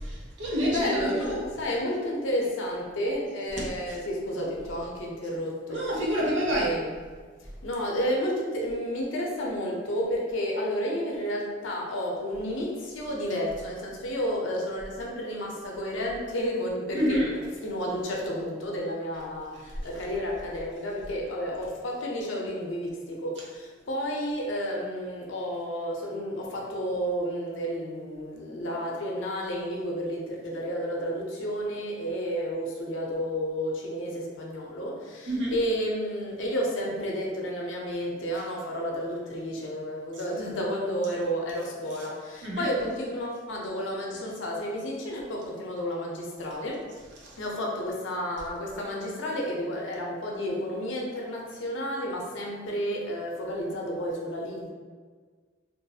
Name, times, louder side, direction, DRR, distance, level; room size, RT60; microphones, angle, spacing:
voice 1, 0.0-1.4 3.6-4.0 5.7-6.7 16.9-17.3 35.3-35.5 41.9-42.1 42.4-42.7 47.2-47.4, equal, 70° right, -5 dB, 0.7 m, -28 dB
voice 2, 0.6-5.8 6.5-6.9 7.6-17.2 17.6-46.8 47.4-54.7, equal, 90° left, -2 dB, 0.6 m, -31 dB
2.5 x 2.3 x 2.7 m, 1.5 s
head